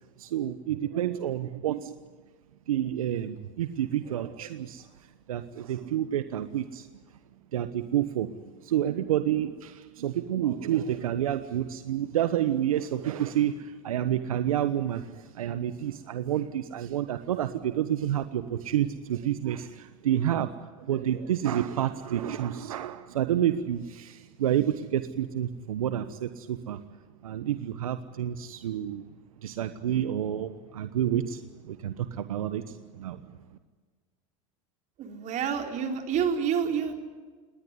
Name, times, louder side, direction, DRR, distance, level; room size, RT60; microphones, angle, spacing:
voice 1, 0.2-1.9 2.7-4.9 5.3-6.9 7.5-8.4 8.6-20.5 20.8-26.8 27.2-29.1 29.4-33.2, right 11 dB, 85° right, 11 dB, 1.1 m, -29 dB
voice 2, 35.0-36.9, right 7 dB, 45° right, 4 dB, 4.1 m, -28 dB
20.0 x 19.5 x 9.7 m, 1.4 s
hypercardioid pair, 105°, 17 cm